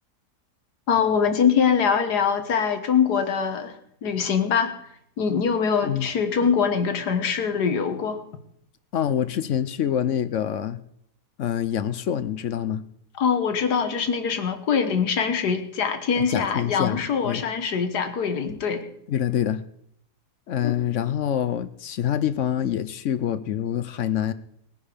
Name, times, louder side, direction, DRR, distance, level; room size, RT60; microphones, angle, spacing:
voice 1, 0.9-4.7 5.2-8.2 13.2-18.9 20.6-20.8, left 6 dB, 85° left, 8 dB, 1.9 m, -23 dB
voice 2, 8.9-10.8 11.4-12.8 16.2-17.4 19.1-19.6 20.5-24.3, left 10 dB, 60° left, 14 dB, 0.9 m, -26 dB
19.5 x 9.8 x 5.1 m, 0.72 s
omnidirectional pair, 1.7 m